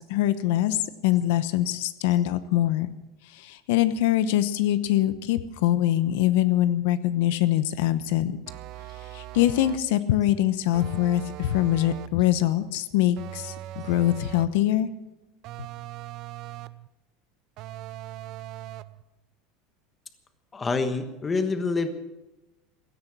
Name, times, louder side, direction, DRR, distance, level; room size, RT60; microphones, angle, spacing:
voice 1, 0.1-2.9 3.3-8.4 9.1-14.9, left 13 dB, 70° left, 13 dB, 0.9 m, -23 dB
sound 1, 8.5-9.9 10.7-12.2 13.2-14.6 15.4-16.9 17.6-19.0, right 14 dB, 45° right, 0.6 m, -40 dB
voice 2, 20.5-21.9, left 4 dB, 15° left, 8 dB, 1.3 m, -26 dB
17.0 x 13.5 x 6.1 m, 1.0 s
supercardioid pair, 160°, 0 cm